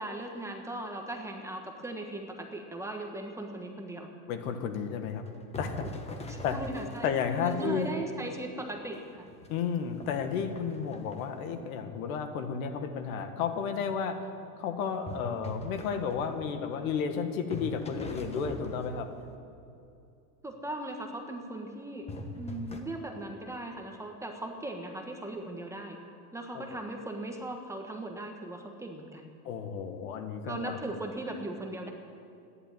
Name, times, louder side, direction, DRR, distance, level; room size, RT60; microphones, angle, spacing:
voice 1, 0.0-4.1 6.3-7.1 7.4-9.3 20.4-22.1 22.3-26.0 26.3-29.3 30.4-31.9, right 1 dB, 5° right, 2 dB, 1.3 m, -38 dB
voice 2, 4.3-5.3 5.6-5.8 6.4-6.6 7.0-7.9 9.5-14.2 14.6-19.1 26.5-26.8 29.4-30.8, left 6 dB, 65° left, 7 dB, 1.8 m, -32 dB
sound 1, 5.1-8.0 8.5-8.6 9.1-11.4 15.1-17.2 17.5-19.3 22.1-22.8, left 2 dB, 15° left, 1.3 m, -42 dB
14.5 x 11.0 x 9.2 m, 2.6 s
supercardioid pair, 140°, 45 cm